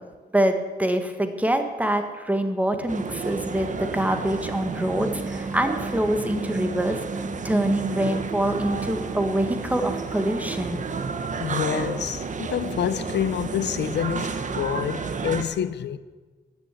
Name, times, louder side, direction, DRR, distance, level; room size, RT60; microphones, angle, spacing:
voice 1, 0.3-7.0 7.4-10.8, right 1 dB, 10° right, 1.7 m, -25 dB
sound 1, 2.9-15.4, right 4 dB, 45° right, 1.3 m, -31 dB
voice 2, 11.4-16.0, left 9 dB, 80° left, 0.7 m, -27 dB
16.0 x 10.0 x 8.4 m
wide cardioid pair, 125°, 18 cm